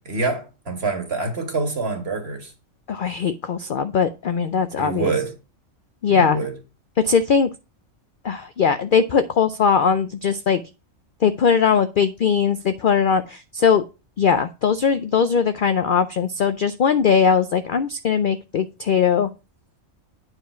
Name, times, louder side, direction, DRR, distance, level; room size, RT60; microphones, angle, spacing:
voice 1, 0.1-2.5 4.8-5.3 6.1-6.5, right 3 dB, 50° right, 2.1 m, -26 dB
voice 2, 2.9-5.1 6.0-6.4 7.0-7.5 8.2-10.6 11.2-13.8 14.2-19.3, left 6 dB, 60° left, 0.5 m, -20 dB
9.4 x 4.9 x 5.6 m
omnidirectional pair, 1.4 m